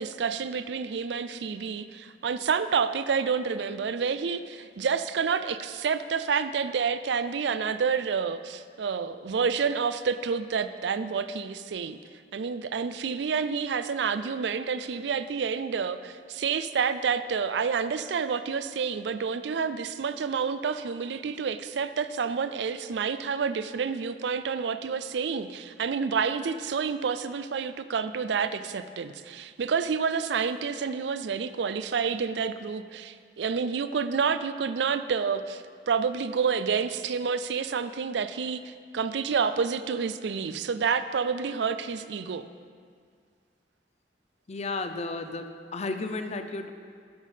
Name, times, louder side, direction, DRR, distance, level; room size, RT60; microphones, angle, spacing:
voice 1, 0.0-12.0 12.3-42.5, right 6 dB, 70° right, 12 dB, 0.4 m, -29 dB
voice 2, 44.5-46.7, left 3 dB, 40° left, 8 dB, 0.6 m, -33 dB
13.0 x 5.2 x 5.6 m, 2.1 s
head